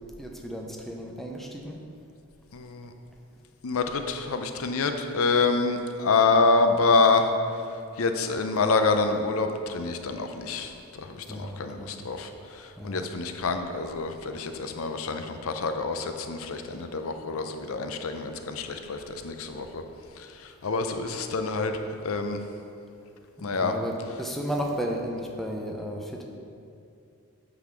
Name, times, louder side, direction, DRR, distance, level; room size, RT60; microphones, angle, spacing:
voice 1, 0.2-1.8 11.3-11.9 12.8-13.0 23.4-26.2, equal, ahead, 0 dB, 0.5 m, -34 dB
voice 2, 2.5-2.9 3.6-7.3 8.0-19.8 20.2-21.7 22.0-22.4 23.4-23.7, left 3 dB, 70° left, 7 dB, 0.5 m, -27 dB
8.8 x 4.0 x 6.2 m, 2.5 s
head